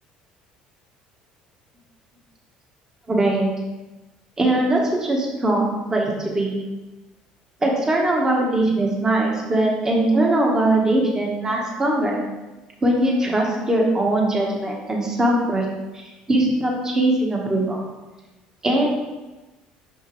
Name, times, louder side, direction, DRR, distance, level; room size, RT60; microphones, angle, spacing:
voice 1, 3.1-3.5 4.4-6.6 7.6-12.2 12.8-15.6 16.3-17.8 18.6-18.9, right 1 dB, 20° right, -1 dB, 1.3 m, -21 dB
5.9 x 5.4 x 3.2 m, 1.1 s
supercardioid pair, 105°, 3 cm